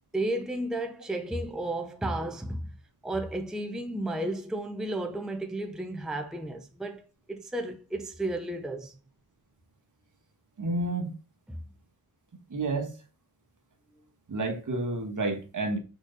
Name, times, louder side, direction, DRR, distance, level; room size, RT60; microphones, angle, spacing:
voice 1, 0.1-2.7 3.0-7.0 7.3-9.0 11.5-11.6, right 1 dB, ahead, 0.6 m, -33 dB
voice 2, 10.6-11.1 12.5-12.9 14.3-15.8, right 2 dB, 55° right, 1.6 m, -30 dB
6.2 x 4.1 x 3.9 m
wide cardioid pair, 130°, 36 cm